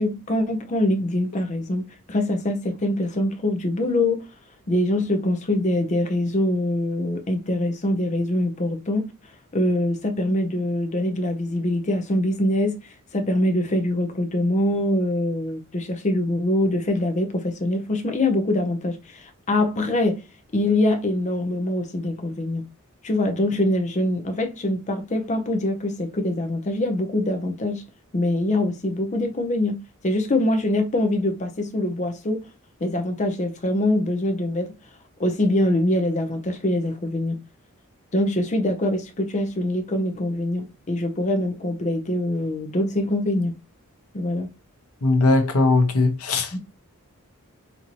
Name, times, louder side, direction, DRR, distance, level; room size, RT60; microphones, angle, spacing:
voice 1, 0.0-4.2 4.7-9.0 9.5-20.2 20.5-22.6 23.0-27.8 28.1-29.8 30.0-32.4 32.8-34.7 35.2-37.4 38.1-43.5 44.1-44.5 46.5-46.6, left 1 dB, 35° left, 0.6 m, -24 dB
voice 2, 45.0-46.5, left 3 dB, 90° left, 0.9 m, -19 dB
4.4 x 2.7 x 2.8 m
head